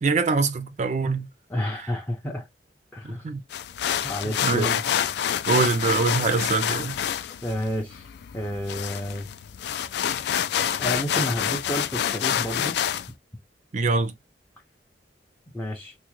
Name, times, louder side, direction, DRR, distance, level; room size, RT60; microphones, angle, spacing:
voice 1, 0.0-1.3 3.1-3.4 4.4-4.8 5.5-7.0 13.7-14.1, right 4 dB, 40° right, 0.4 m, -23 dB
voice 2, 1.5-2.5 2.9-3.3 4.0-4.7 7.4-8.1 8.3-9.3 10.8-12.8 15.5-15.9, equal, 10° left, 0.5 m, -30 dB
sound 1, 3.5-13.1, left 9 dB, 65° left, 0.3 m, -27 dB
3.6 x 2.1 x 3.0 m
head